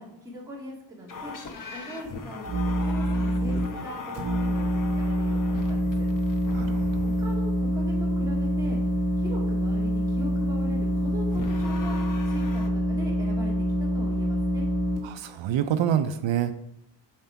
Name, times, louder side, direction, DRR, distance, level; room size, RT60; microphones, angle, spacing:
voice 1, 0.0-4.7 5.0-6.1 7.0-8.8 9.2-12.0 12.2-14.7, equal, 10° right, -5 dB, 2.4 m, -40 dB
sound 1, 1.1-7.4 11.3-12.7, left 3 dB, 45° left, 1.0 m, -40 dB
sound 2, 2.5-3.6 4.1-15.0, equal, 65° right, 2.9 m, -26 dB
voice 2, 6.5-7.1 15.0-16.5, right 9 dB, 80° right, 9 dB, 0.6 m, -27 dB
7.7 x 4.4 x 5.7 m, 0.75 s
wide cardioid pair, 170°, 45 cm